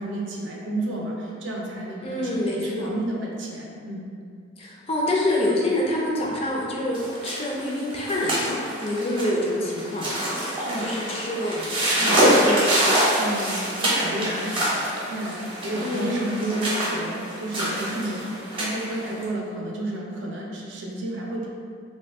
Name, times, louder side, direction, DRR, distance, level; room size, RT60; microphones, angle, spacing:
voice 1, 0.0-4.1 10.6-10.9 12.0-12.6 13.2-21.5, right 1 dB, 65° right, -2 dB, 0.5 m, -31 dB
voice 2, 2.0-2.9 4.6-8.4 8.8-10.1 10.8-11.6 12.3-12.9 15.8-16.2, left 1 dB, 30° left, -3 dB, 0.4 m, -26 dB
sound 1, 6.9-19.2, right 1 dB, 25° right, 0.7 m, -25 dB
2.6 x 2.3 x 3.4 m, 2.2 s
head